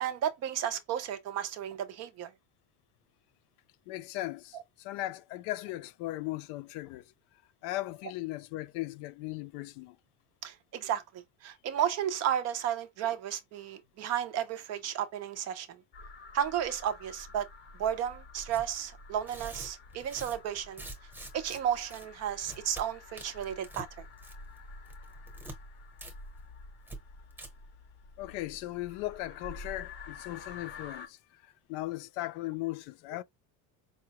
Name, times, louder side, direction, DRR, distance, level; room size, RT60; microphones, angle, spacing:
voice 1, 0.0-2.3 10.4-15.7 16.3-17.5 17.8-20.8 21.3-23.9, right 10 dB, 40° right, 0.4 m, -33 dB
voice 2, 3.9-7.1 7.6-10.0 28.2-33.2, left 17 dB, 70° left, 0.5 m, -38 dB
sound 1, 15.9-31.1, left 3 dB, 25° left, 0.6 m, -49 dB
Tearing, 18.5-18.7 19.2-21.6 21.9-22.1 22.4-22.8 23.2-23.9 24.2-24.6 24.9-25.6 26.0-26.1 26.4-26.5 26.9-27.0 27.3-27.5, right 2 dB, 5° right, 0.8 m, -45 dB
4.8 x 2.2 x 2.8 m
cardioid pair, 170°, 44 cm